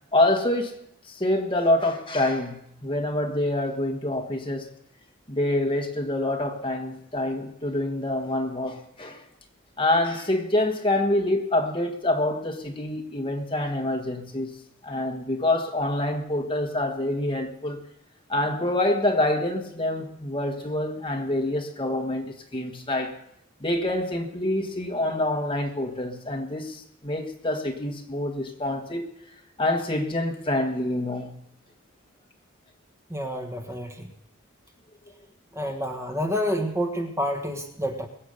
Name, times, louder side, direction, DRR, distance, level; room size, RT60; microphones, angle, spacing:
voice 1, 0.1-0.7 1.1-4.7 5.3-9.2 9.8-14.6 14.8-17.8 18.3-23.1 23.6-29.1 29.6-31.3, left 1 dB, 25° left, 1.6 m, -26 dB
voice 2, 33.1-34.1 35.5-38.1, equal, 15° right, 1.5 m, -28 dB
22.0 x 8.3 x 6.6 m
head